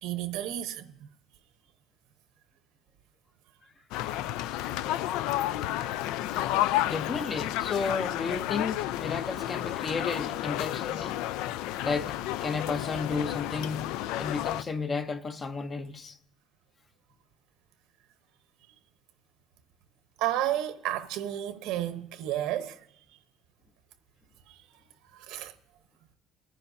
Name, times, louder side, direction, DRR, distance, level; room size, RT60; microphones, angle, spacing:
voice 1, 0.0-1.1 20.2-23.2 24.5-24.6 25.1-25.5, right 12 dB, 85° right, 0.9 m, -32 dB
sound 1, 3.9-14.6, left 13 dB, 90° left, 0.3 m, -31 dB
voice 2, 6.8-11.2 11.8-16.2, left 4 dB, 25° left, 0.6 m, -33 dB
29.0 x 10.0 x 2.7 m
cardioid pair, 160°, 0 cm